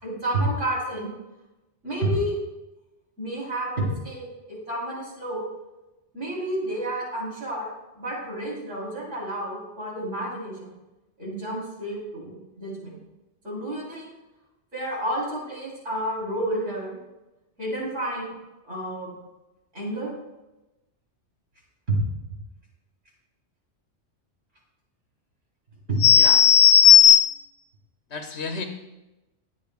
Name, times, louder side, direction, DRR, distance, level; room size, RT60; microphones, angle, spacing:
voice 1, 0.0-1.1 1.8-2.3 3.2-5.5 6.1-7.7 7.9-10.7 11.2-13.0 13.4-14.1 14.7-17.0 17.6-18.3 18.6-19.1 19.7-20.1 21.9-22.0 25.9-26.0, right 1 dB, 80° right, -5 dB, 4.3 m, -30 dB
voice 2, 26.0-27.4 28.1-28.6, left 9 dB, 65° left, 3 dB, 1.1 m, -15 dB
19.5 x 8.2 x 2.4 m, 1.0 s
omnidirectional pair, 1.2 m